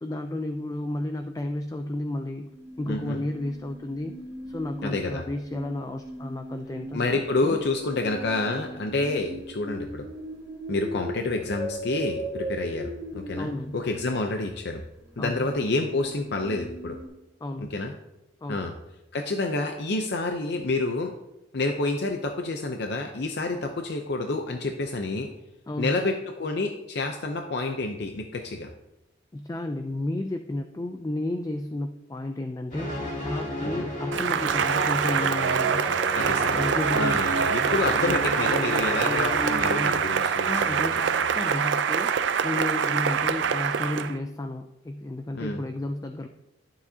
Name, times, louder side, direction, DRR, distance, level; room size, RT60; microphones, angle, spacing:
voice 1, 0.0-2.5 2.8-4.2 4.5-7.6 13.4-13.8 15.2-15.5 17.4-17.8 18.4-18.7 23.5-23.7 25.7-25.9 29.3-35.9 36.5-37.2 40.4-46.3, left 1 dB, 20° left, 6 dB, 0.3 m, -32 dB
sound 1, 2.4-14.1 15.0-17.1, right 1 dB, 15° right, 3.2 m, -39 dB
voice 2, 2.9-3.2 4.8-5.2 6.9-10.1 10.7-14.8 15.2-17.0 17.6-17.9 18.5-18.7 19.1-21.1 21.5-25.3 25.8-28.7 33.6-33.9 36.1-41.3 45.3-45.6, left 2 dB, 60° left, 4 dB, 0.6 m, -29 dB
sound 2, 32.7-39.9, equal, 45° left, 2.4 m, -32 dB
Cheering / Applause, 34.1-44.2, right 7 dB, 75° right, 0.4 m, -25 dB
12.0 x 7.0 x 2.8 m, 0.94 s
head